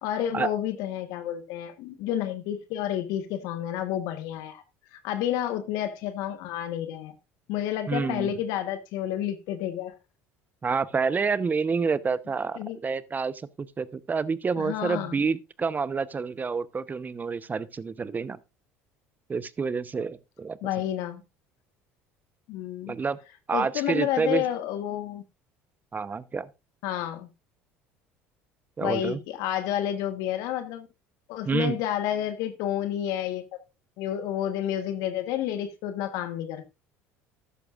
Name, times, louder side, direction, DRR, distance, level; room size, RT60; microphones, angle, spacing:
voice 1, 0.0-4.6 4.9-7.1 7.5-9.9 12.6-12.8 14.6-15.2 20.6-21.2 22.5-22.9 23.5-25.2 26.8-27.3 28.8-30.9 31.3-33.4 34.0-36.7, left 11 dB, 70° left, 1.3 m, -30 dB
voice 2, 7.9-8.3 10.6-18.4 19.3-20.6 22.9-23.2 23.5-24.4 25.9-26.5 28.8-29.2 31.4-31.8, right 5 dB, 25° right, 0.8 m, -28 dB
13.5 x 11.5 x 2.5 m
hypercardioid pair, 80°, 6 cm